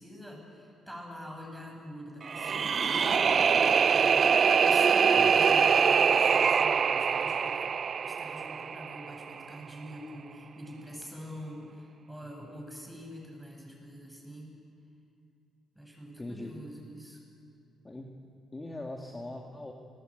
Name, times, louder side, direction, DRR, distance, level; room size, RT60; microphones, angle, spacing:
voice 1, 0.0-7.7 8.0-14.5 15.7-17.2, equal, 5° right, 0 dB, 7.9 m, -45 dB
sound 1, 2.2-9.3, right 6 dB, 45° right, 0.6 m, -24 dB
voice 2, 5.0-5.3 16.2-16.5 17.8-18.1 18.5-19.7, left 2 dB, 20° left, 1 dB, 2.1 m, -41 dB
29.5 x 20.5 x 9.1 m, 2.5 s
cardioid pair, 90°, 0 cm